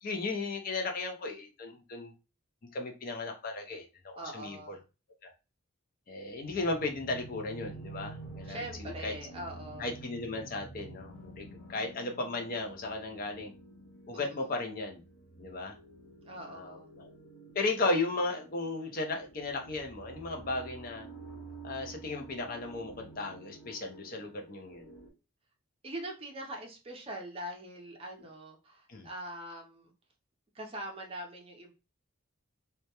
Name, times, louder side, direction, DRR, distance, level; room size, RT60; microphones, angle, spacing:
voice 1, 0.0-2.1 2.7-4.8 5.2-5.3 6.1-9.1 9.8-13.5 14.1-15.0 15.4-15.7 16.4-17.1 17.5-21.1 21.6-24.9 28.9-29.1, left 2 dB, 40° left, 3 dB, 0.4 m, -35 dB
voice 2, 4.2-4.8 8.4-9.9 14.1-14.4 16.2-16.9 25.8-29.9 30.5-31.7, right 1 dB, 25° right, 2 dB, 0.4 m, -43 dB
sound 1, 6.4-25.1, right 3 dB, 70° left, 1.1 m, -49 dB
2.2 x 2.0 x 2.8 m, 0.30 s
head